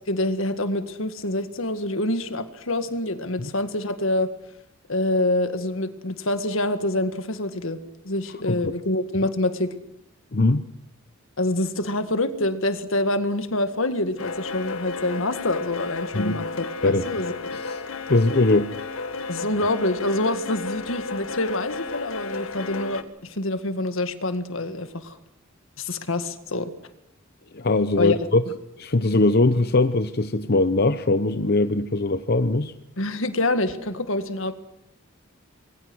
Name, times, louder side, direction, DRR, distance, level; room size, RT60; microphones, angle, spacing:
voice 1, 0.1-4.3 4.9-7.8 8.0-9.8 11.4-17.3 19.3-25.2 25.8-26.7 28.0-28.2 33.0-34.5, left 1 dB, 70° left, 9 dB, 1.9 m, -26 dB
voice 2, 10.3-10.6 16.1-16.4 16.8-17.1 17.6-17.8 18.1-18.7 27.5-28.4 28.8-32.7, left 2 dB, 50° left, 10 dB, 0.8 m, -21 dB
sound 1, 14.2-23.0, left 3 dB, 90° left, 1.8 m, -33 dB
26.5 x 22.0 x 6.3 m, 0.76 s
head